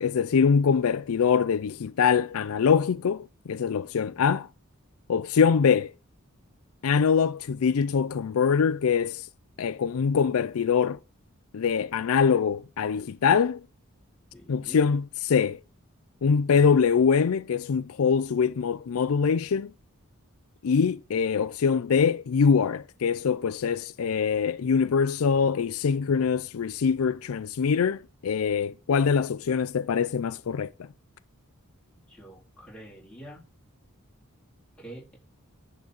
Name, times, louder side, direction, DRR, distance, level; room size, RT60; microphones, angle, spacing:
voice 1, 0.0-4.5 5.1-5.9 6.8-9.3 9.6-11.0 11.5-13.6 14.5-15.6 16.2-19.7 20.6-30.7, left 6 dB, 75° left, 0.4 m, -23 dB
voice 2, 14.3-14.8 32.1-33.4 34.8-35.2, right 1 dB, 5° left, 3.8 m, -46 dB
10.5 x 4.0 x 6.3 m
head